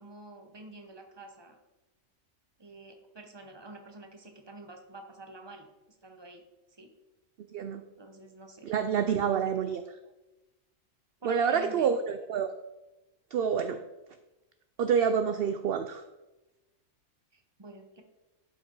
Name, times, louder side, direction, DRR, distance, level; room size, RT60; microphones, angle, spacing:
voice 1, 0.0-1.6 2.6-5.7 6.0-6.4 6.7-6.9 8.0-8.6 9.3-9.5 11.2-11.9 17.3-18.0, right 2 dB, 20° right, 4 dB, 1.0 m, -47 dB
voice 2, 8.6-9.8 11.2-12.5 13.3-13.8 14.8-16.0, right 7 dB, 60° right, 9 dB, 0.7 m, -27 dB
11.5 x 5.2 x 4.6 m, 1.0 s
omnidirectional pair, 1.3 m